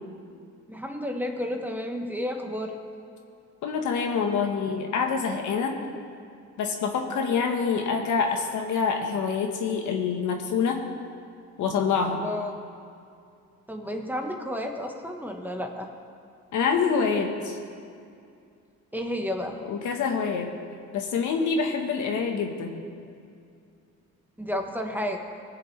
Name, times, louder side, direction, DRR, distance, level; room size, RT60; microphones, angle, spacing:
voice 1, 0.7-2.8 12.0-12.5 13.7-15.9 18.9-19.6 24.4-25.2, left 1 dB, 5° right, 3 dB, 1.2 m, -31 dB
voice 2, 3.6-5.7 6.6-10.8 11.6-12.2 16.5-17.6 19.6-20.5 20.9-22.7, left 5 dB, 75° left, 3 dB, 1.3 m, -26 dB
22.0 x 7.6 x 3.3 m, 2.4 s
cardioid pair, 90°, 30 cm